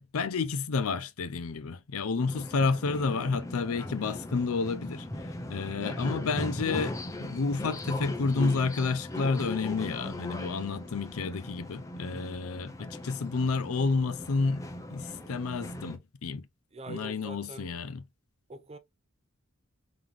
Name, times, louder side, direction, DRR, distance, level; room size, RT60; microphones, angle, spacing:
voice 1, 0.0-16.5 16.9-18.0, left 4 dB, 70° left, 0.5 m, -30 dB
sound 1, 2.2-16.0, left 1 dB, 15° left, 0.7 m, -39 dB
voice 2, 16.7-17.7 18.5-18.8, right 2 dB, 30° right, 0.6 m, -43 dB
3.9 x 3.1 x 3.4 m
head